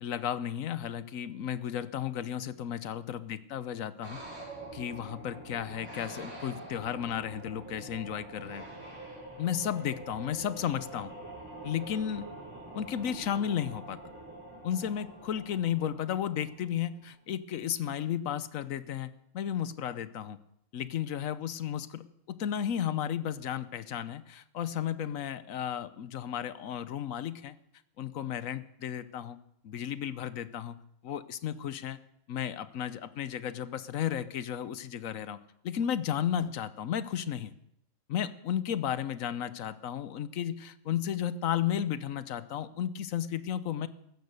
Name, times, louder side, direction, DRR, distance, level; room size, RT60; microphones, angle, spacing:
voice 1, 0.0-4.2 4.7-8.6 9.4-11.1 11.6-12.3 12.7-14.0 14.6-20.4 20.7-27.6 28.0-29.4 29.6-32.0 32.3-35.4 35.6-37.5 38.1-43.9, left 9 dB, 90° left, 14 dB, 1.2 m, -33 dB
sound 1, 4.0-17.0, right 2 dB, 60° right, 6.6 m, -45 dB
15.0 x 12.0 x 6.5 m, 0.77 s
omnidirectional pair, 1.3 m